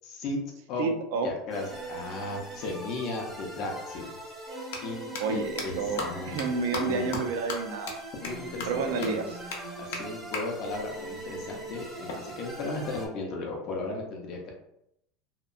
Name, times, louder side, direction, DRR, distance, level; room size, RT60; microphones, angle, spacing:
voice 1, 0.0-0.4 0.7-0.9 1.2-4.2 4.8-6.4 6.7-7.2 8.2-9.2 9.8-14.5, left 3 dB, 40° left, 0 dB, 0.5 m, -35 dB
voice 2, 0.8-1.3 5.2-8.0 8.7-9.2, right 4 dB, 70° right, 5 dB, 0.4 m, -30 dB
sound 1, 1.5-13.1, right 2 dB, 10° right, 0.5 m, -41 dB
sound 2, 4.6-4.8 5.1-5.2 5.6-5.7 6.0-6.1 6.4-6.5 6.7-6.8 7.1-7.2 7.5-7.6 7.9-8.0 8.2-8.3 8.6-8.7 9.0-9.1 9.5-9.6 9.9-10.0 10.3-10.4 12.1-13.1, left 4 dB, 90° left, 0.6 m, -35 dB
2.8 x 2.2 x 2.4 m, 0.78 s
supercardioid pair, 170°, 0 cm